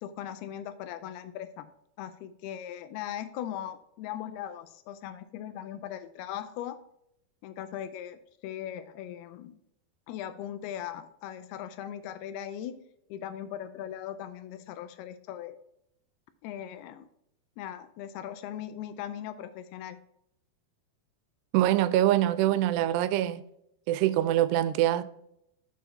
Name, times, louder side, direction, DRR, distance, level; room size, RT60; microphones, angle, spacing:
voice 1, 0.0-1.7 2.0-6.8 7.4-9.6 10.1-15.6 16.4-17.1 17.6-20.0, left 10 dB, 85° left, 2.4 m, -39 dB
voice 2, 21.5-23.4 23.9-25.0, right 13 dB, 90° right, 2.7 m, -24 dB
6.9 x 6.3 x 3.8 m
omnidirectional pair, 4.7 m